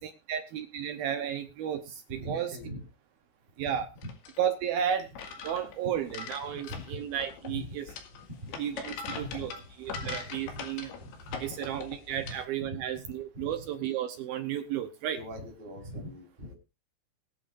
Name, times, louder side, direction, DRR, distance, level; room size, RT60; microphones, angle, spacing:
voice 1, 0.0-2.5 3.6-3.9 4.4-5.1 5.4-7.9 8.6-9.5 9.8-10.9 11.4-15.2, right 9 dB, 80° right, 7 dB, 2.1 m, -33 dB
voice 2, 2.2-2.8 3.6-3.8 4.0-4.1 6.5-7.0 7.5-7.7 8.4-8.7 9.0-10.6 10.9-11.8 12.2-13.7 15.1-16.5, equal, 10° right, -1 dB, 3.8 m, -42 dB
sound 1, 4.0-12.5, left 6 dB, 65° left, 3.7 m, -42 dB
22.5 x 8.5 x 2.6 m, 0.27 s
omnidirectional pair, 5.7 m